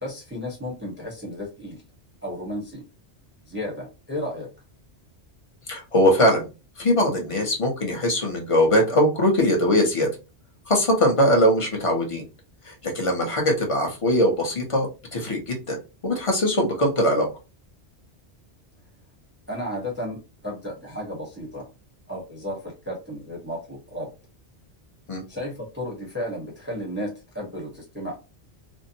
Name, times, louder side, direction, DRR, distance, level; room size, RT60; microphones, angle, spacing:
voice 1, 0.0-1.8 2.2-2.8 3.5-4.5 19.5-21.7 22.1-24.1 25.3-28.2, equal, 10° right, -2 dB, 0.8 m, -33 dB
voice 2, 5.7-6.5 6.8-10.1 10.7-12.2 12.6-15.8 16.0-17.3 25.1-25.2, equal, 35° left, 1 dB, 0.7 m, -21 dB
2.6 x 2.0 x 2.7 m, 0.29 s
omnidirectional pair, 1.2 m